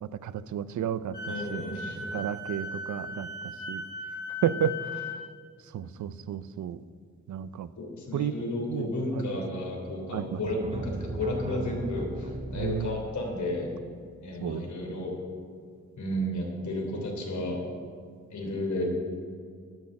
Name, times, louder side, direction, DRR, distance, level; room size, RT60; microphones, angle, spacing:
voice 1, 0.0-1.6 2.1-3.8 4.4-5.1 5.7-6.8 7.3-7.7 8.1-8.4 8.7-9.3 10.1-10.7 12.5-12.9 14.4-14.7, right 9 dB, 80° right, 16 dB, 0.5 m, -32 dB
Wind instrument woodwind instrument, 1.1-5.2, left 2 dB, 30° left, 3.8 m, -37 dB
voice 2, 1.2-2.1 7.8-13.7 14.2-15.1 16.0-17.6 18.3-18.8, left 1 dB, 80° left, 0 dB, 3.3 m, -32 dB
sound 1, 10.5-13.6, right 3 dB, 25° right, 0.5 m, -37 dB
12.5 x 6.4 x 8.7 m, 2.1 s
wide cardioid pair, 160°, 29 cm